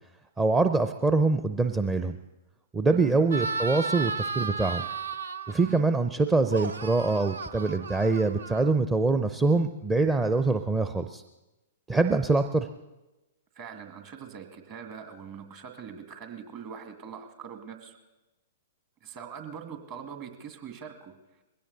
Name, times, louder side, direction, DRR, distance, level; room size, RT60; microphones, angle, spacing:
voice 1, 0.4-2.2 2.7-4.8 5.5-11.2 11.9-12.7, right 3 dB, 15° right, 8 dB, 0.6 m, -24 dB
sound 1, 3.3-5.8 6.4-9.0, right 4 dB, 75° right, 0.7 m, -34 dB
voice 2, 13.6-18.0 19.0-21.2, right 7 dB, 40° right, 6 dB, 2.0 m, -42 dB
21.0 x 16.5 x 4.0 m, 1.0 s
figure-of-eight pair, 115°, 0 cm